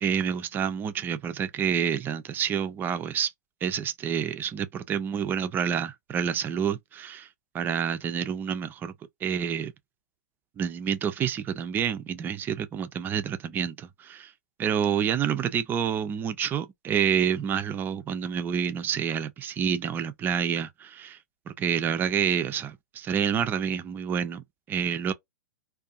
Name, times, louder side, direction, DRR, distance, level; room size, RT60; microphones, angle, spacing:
voice 1, 0.0-3.3 3.6-7.3 7.5-8.9 9.2-9.7 10.6-14.3 14.6-21.2 21.5-25.1, right 8 dB, 20° right, 0.4 m, -28 dB
2.4 x 2.3 x 2.4 m
hypercardioid pair, 125°, 10 cm